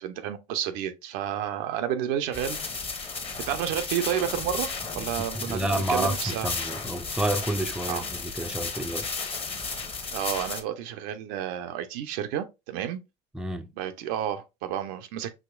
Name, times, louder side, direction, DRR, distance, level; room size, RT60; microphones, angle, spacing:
voice 1, 0.0-2.8 3.5-4.7 4.9-6.5 7.8-8.0 10.1-13.0 13.8-15.3, right 10 dB, 70° right, 0.7 m, -31 dB
sound 1, 2.3-10.6, left 4 dB, 30° left, 1.1 m, -34 dB
voice 2, 5.3-9.1 13.3-13.7, right 1 dB, 5° right, 0.5 m, -29 dB
5.0 x 3.0 x 2.3 m
hypercardioid pair, 75°, 20 cm